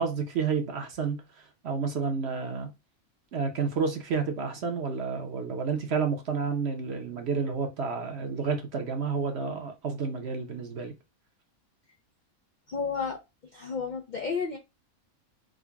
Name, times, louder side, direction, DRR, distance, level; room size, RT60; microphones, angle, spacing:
voice 1, 0.0-2.7 3.3-10.9, right 5 dB, 55° right, 0.9 m, -30 dB
voice 2, 12.7-13.2 13.5-14.6, left 5 dB, 65° left, 0.4 m, -31 dB
3.8 x 2.1 x 3.4 m
omnidirectional pair, 1.5 m